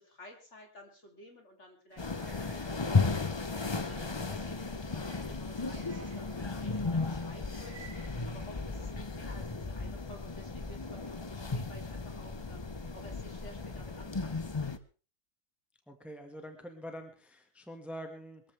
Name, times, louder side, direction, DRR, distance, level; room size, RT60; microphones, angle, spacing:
voice 1, 0.0-3.5 3.8-7.9 8.3-12.7 12.9-14.5, left 1 dB, 50° left, 2 dB, 3.7 m, -53 dB
sound 1, 1.9-8.2, right 4 dB, 45° right, 2.1 m, -55 dB
sound 2, 2.0-14.8, left 4 dB, 25° left, 0.6 m, -35 dB
voice 2, 15.9-18.4, equal, ahead, 5 dB, 1.7 m, -45 dB
22.0 x 14.5 x 3.5 m, 0.37 s
omnidirectional pair, 1.6 m